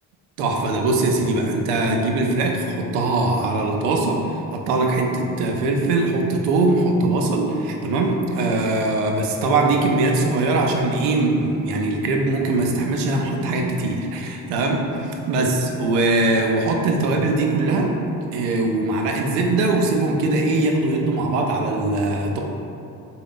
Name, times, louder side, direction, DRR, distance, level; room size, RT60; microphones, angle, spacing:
voice 1, 0.4-4.2 4.5-17.9 18.3-22.4, right 2 dB, 85° right, 1 dB, 0.6 m, -21 dB
3.8 x 2.2 x 3.6 m, 2.7 s
hypercardioid pair, 50°, 49 cm